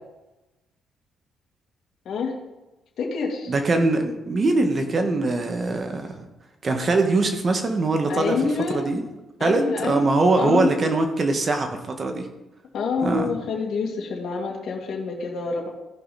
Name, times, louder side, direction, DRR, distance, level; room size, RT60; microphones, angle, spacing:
voice 1, 3.0-3.5 8.1-8.8 9.4-10.0 10.4-10.7 12.7-15.7, left 4 dB, 65° left, -2 dB, 2.3 m, -27 dB
voice 2, 3.5-6.1 6.6-9.0 9.4-12.3 13.0-13.4, right 2 dB, 40° right, 5 dB, 1.7 m, -22 dB
16.0 x 5.6 x 4.3 m, 1.0 s
cardioid pair, 90°, 0 cm